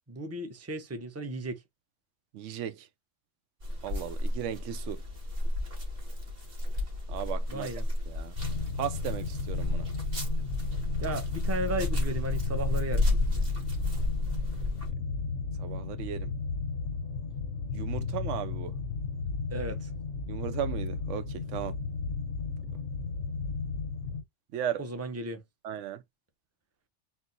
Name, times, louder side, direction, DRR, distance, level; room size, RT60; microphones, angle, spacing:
voice 1, 0.1-1.6 7.5-7.9 11.0-13.2 19.5-19.9 24.8-25.4, right 1 dB, 15° right, 0.6 m, -35 dB
voice 2, 2.3-2.9 3.8-5.0 7.1-7.7 8.1-8.3 8.8-9.9 15.6-16.3 17.7-18.8 20.3-21.8 24.5-24.8 25.6-26.0, right 10 dB, 90° right, 0.9 m, -36 dB
sound 1, 3.6-14.9, left 2 dB, 50° right, 2.2 m, -32 dB
sound 2, 8.4-24.2, left 4 dB, 75° left, 1.1 m, -34 dB
4.4 x 2.1 x 3.9 m
omnidirectional pair, 1.2 m